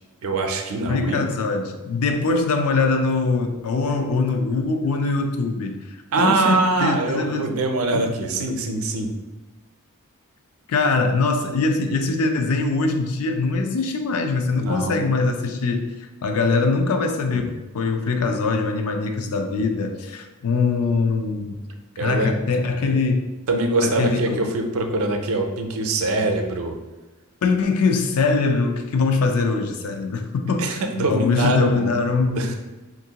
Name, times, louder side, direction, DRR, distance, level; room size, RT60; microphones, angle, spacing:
voice 1, 0.2-1.2 6.1-9.1 14.5-15.0 22.0-22.3 23.5-26.8 30.6-32.0 32.3-32.6, right 2 dB, 70° right, 4 dB, 0.5 m, -23 dB
voice 2, 0.9-7.5 7.9-8.0 10.7-21.6 22.0-23.2 23.8-24.4 27.4-32.6, left 4 dB, 80° left, 5 dB, 0.4 m, -22 dB
3.6 x 2.5 x 2.8 m, 1.1 s
head